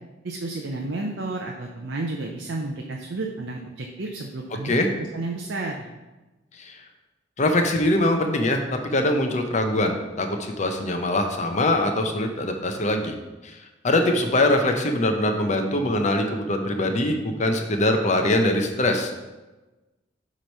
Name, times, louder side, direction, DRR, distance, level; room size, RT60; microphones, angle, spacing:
voice 1, 0.2-4.7 5.1-5.9, right 2 dB, 70° right, 1 dB, 0.6 m, -31 dB
voice 2, 7.4-13.1 13.4-13.6 13.8-19.1, left 1 dB, 40° left, 5 dB, 0.7 m, -23 dB
7.5 x 3.1 x 5.4 m, 1.1 s
head